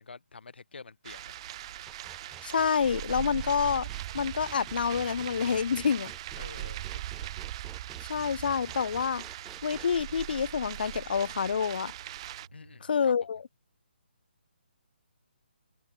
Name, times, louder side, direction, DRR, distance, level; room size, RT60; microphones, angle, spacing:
voice 1, 0.0-1.4 6.4-7.3 12.5-13.1, left 4 dB, 75° left, 7.5 m, -48 dB
sound 1, 1.0-12.5, right 14 dB, 30° right, 2.0 m, -40 dB
sound 2, 1.2-13.0, right 3 dB, 90° right, 5.9 m, -55 dB
sound 3, 1.9-9.9, right 7 dB, 10° right, 1.0 m, -50 dB
voice 2, 2.4-3.9 4.1-6.1 8.1-9.2 9.6-11.9 12.9-13.4, left 6 dB, 60° left, 0.6 m, -28 dB
hypercardioid pair, 155°, 6 cm